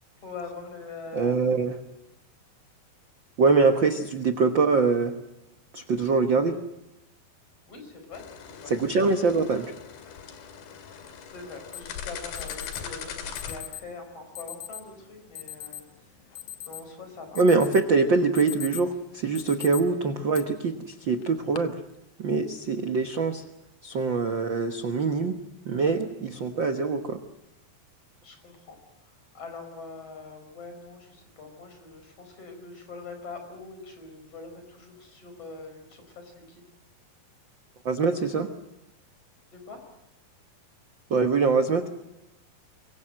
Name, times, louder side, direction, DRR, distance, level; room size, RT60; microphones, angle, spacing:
voice 1, 0.2-1.4 7.7-8.8 11.3-15.8 16.7-17.4 28.2-28.8 29.0-36.6 39.5-39.8, left 4 dB, 40° left, 5 dB, 5.9 m, -43 dB
voice 2, 1.1-1.8 3.4-5.2 5.7-6.6 8.7-9.7 17.4-21.8 22.2-23.4 23.8-25.4 25.6-27.2 37.8-38.5 41.1-41.9, right 4 dB, 85° right, 7 dB, 1.0 m, -24 dB
sound 1, 8.1-13.6, left 7 dB, 85° left, 4.0 m, -40 dB
Alarm, 11.7-11.8 12.4-12.8 13.4-13.8 14.4-14.8 15.4-15.8 16.2-17.0 17.4-17.9 18.2-18.9 19.4-19.8 20.3-20.4 21.2-21.6, left 11 dB, 60° left, 1.9 m, -39 dB
24.5 x 23.5 x 7.8 m, 0.87 s
omnidirectional pair, 4.3 m